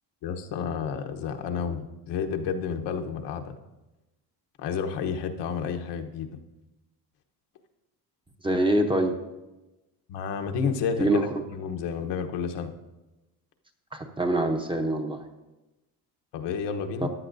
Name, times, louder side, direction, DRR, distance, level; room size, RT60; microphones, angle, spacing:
voice 1, 0.2-3.6 4.6-6.4 10.1-12.7 16.3-17.1, left 6 dB, 85° left, 4 dB, 1.1 m, -31 dB
voice 2, 8.4-9.2 11.0-11.3 13.9-15.2, right 1 dB, 15° right, 4 dB, 0.8 m, -24 dB
15.0 x 10.0 x 2.6 m, 1.0 s
cardioid pair, 140°, 41 cm